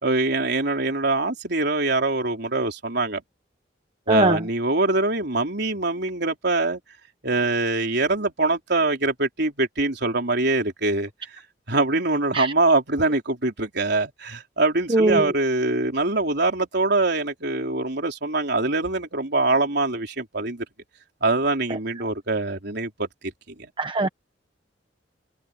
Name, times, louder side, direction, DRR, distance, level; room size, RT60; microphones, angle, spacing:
voice 1, 0.0-3.2 4.1-6.8 7.2-11.4 11.7-20.6 21.2-23.1 23.6-23.7, right 2 dB, 65° right, 4.1 m, -23 dB
voice 2, 4.1-4.4 12.3-12.5 14.9-15.3 23.8-24.1, right 2 dB, 30° right, 1.0 m, -20 dB
head